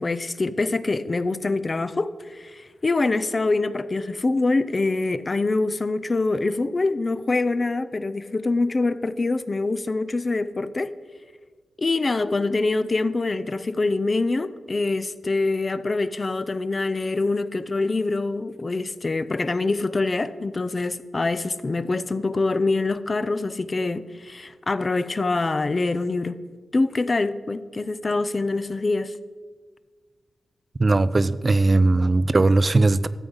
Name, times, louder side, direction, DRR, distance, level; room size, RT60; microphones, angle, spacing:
voice 1, 0.0-10.9 11.8-26.4 26.7-29.1, left 3 dB, 30° left, 14 dB, 0.5 m, -25 dB
voice 2, 30.8-33.1, right 2 dB, 30° right, 15 dB, 0.3 m, -19 dB
13.0 x 7.9 x 5.5 m, 1.5 s
wide cardioid pair, 125°, 0 cm